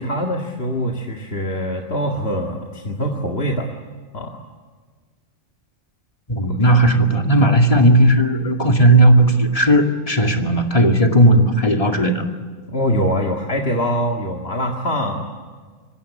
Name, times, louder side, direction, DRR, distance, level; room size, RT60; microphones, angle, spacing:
voice 1, 0.0-3.7 4.1-4.4 6.5-6.7 12.7-15.3, equal, 45° left, 1 dB, 2.2 m, -23 dB
voice 2, 6.3-12.2, right 1 dB, 25° left, 3 dB, 2.4 m, -15 dB
25.5 x 24.5 x 8.5 m, 1.5 s
omnidirectional pair, 1.4 m